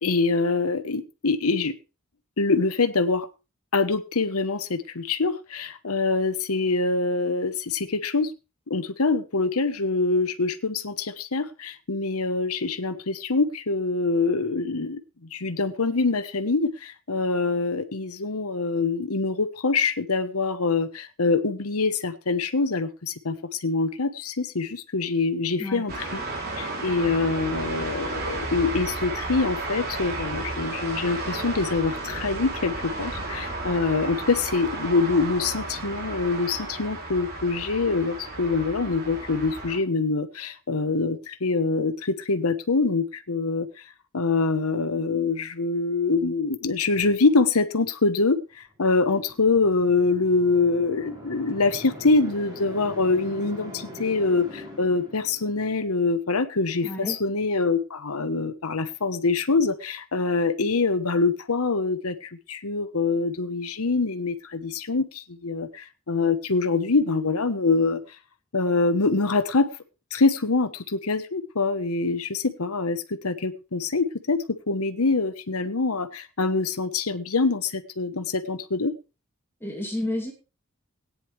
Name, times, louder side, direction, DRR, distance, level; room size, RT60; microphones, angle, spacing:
voice 1, 0.0-1.8 2.4-3.3 3.7-8.3 8.7-15.0 15.3-26.2 26.6-43.7 44.1-68.0 68.5-69.7 70.1-78.9, left 3 dB, 85° left, 11 dB, 1.1 m, -25 dB
sound 1, 25.9-39.8, right 2 dB, 45° right, 3.3 m, -33 dB
sound 2, 49.0-55.8, left 1 dB, 20° right, 4.9 m, -42 dB
voice 2, 56.8-57.2 79.6-80.3, left 1 dB, 10° left, 0 dB, 2.6 m, -30 dB
17.5 x 9.8 x 3.3 m, 0.30 s
head